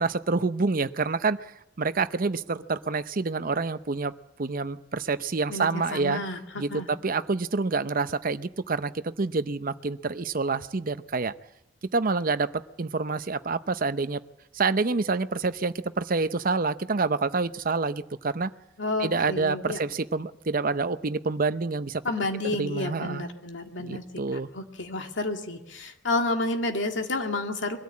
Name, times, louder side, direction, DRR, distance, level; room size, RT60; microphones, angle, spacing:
voice 1, 0.0-1.5 1.8-4.1 4.4-6.2 6.6-11.3 11.9-14.2 14.5-18.5 19.0-22.0 22.6-23.2 23.8-24.5, right 4 dB, 50° right, 12 dB, 0.7 m, -27 dB
voice 2, 5.5-6.4 6.7-6.9 18.8-19.8 22.0-27.8, left 2 dB, 90° left, 4 dB, 2.2 m, -30 dB
22.5 x 13.5 x 8.5 m, 0.86 s
head